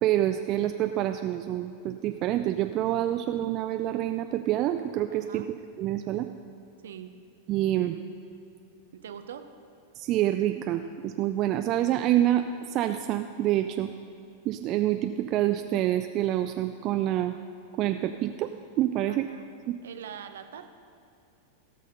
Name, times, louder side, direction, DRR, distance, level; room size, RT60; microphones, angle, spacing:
voice 1, 0.0-5.4 5.8-6.3 7.5-8.0 9.9-13.9 14.4-17.4 17.8-18.5 18.8-19.3, right 13 dB, 35° right, 7 dB, 0.4 m, -27 dB
voice 2, 5.1-5.5 6.8-7.1 8.9-9.5 19.1-19.5 19.8-20.7, right 8 dB, 60° right, 9 dB, 0.7 m, -43 dB
17.0 x 6.5 x 5.3 m, 2.6 s
figure-of-eight pair, 90°, 0 cm